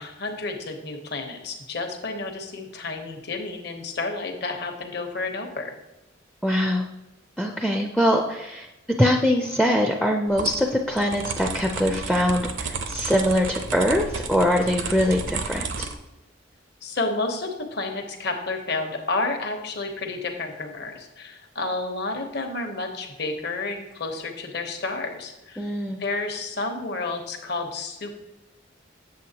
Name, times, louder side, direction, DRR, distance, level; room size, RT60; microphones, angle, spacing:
voice 1, 0.0-5.7 16.8-25.7 26.0-28.1, left 3 dB, 60° left, 4 dB, 1.0 m, -30 dB
voice 2, 6.4-6.9 7.4-8.7 9.0-15.9 25.6-26.0, equal, ahead, 3 dB, 0.4 m, -23 dB
sound 1, 10.3-15.9, right 4 dB, 75° right, 0.6 m, -32 dB
7.6 x 7.3 x 2.8 m, 0.99 s
head